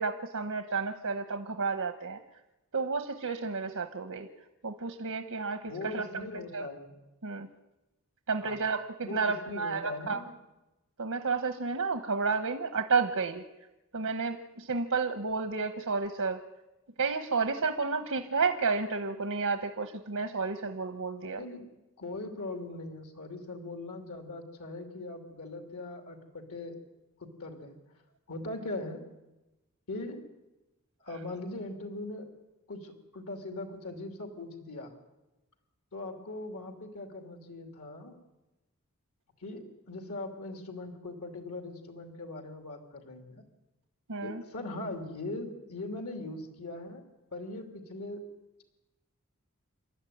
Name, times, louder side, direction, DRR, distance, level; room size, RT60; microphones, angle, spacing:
voice 1, 0.0-2.2 2.7-4.3 4.6-6.1 6.5-6.7 7.2-7.5 8.3-10.2 11.0-13.4 13.9-16.4 17.0-21.4 44.1-44.4, right 4 dB, 85° right, 7 dB, 1.2 m, -31 dB
voice 2, 5.6-6.9 8.4-8.6 9.0-10.3 21.4-21.6 22.0-26.8 27.2-27.8 28.3-29.0 29.9-30.2 31.0-32.3 32.7-34.9 35.9-38.1 39.4-43.4 44.2-47.0 47.3-48.2, left 2 dB, 85° left, 4 dB, 3.0 m, -40 dB
28.5 x 12.5 x 9.4 m, 1.0 s
head